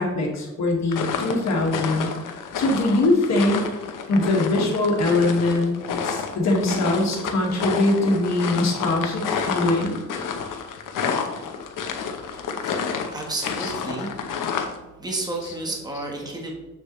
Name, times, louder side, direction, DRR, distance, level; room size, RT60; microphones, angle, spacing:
voice 1, 0.0-2.1 2.6-3.6 4.1-5.8 6.0-10.0 13.6-13.7, left 2 dB, 60° left, 0 dB, 1.8 m, -22 dB
sound 1, 0.9-14.8, left 6 dB, 85° left, 0.9 m, -29 dB
voice 2, 13.1-14.2 15.0-16.5, right 2 dB, 15° right, 0 dB, 1.3 m, -31 dB
7.4 x 6.5 x 3.1 m, 1.1 s
wide cardioid pair, 165°, 31 cm